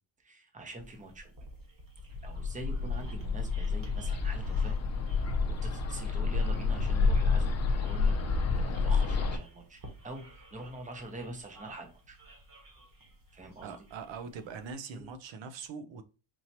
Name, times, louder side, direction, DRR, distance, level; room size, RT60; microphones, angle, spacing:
voice 1, 0.2-1.5 2.2-4.7 5.2-8.2 8.6-12.2 13.3-13.7 14.9-15.1, right 2 dB, 15° right, 0.8 m, -45 dB
sound 1, 0.8-14.7, right 1 dB, 40° right, 1.5 m, -54 dB
Bird, 2.1-9.4, left 4 dB, 35° left, 0.5 m, -29 dB
voice 2, 13.6-16.0, right 5 dB, 60° right, 0.6 m, -42 dB
4.5 x 2.8 x 2.8 m
cardioid pair, 110°, 50 cm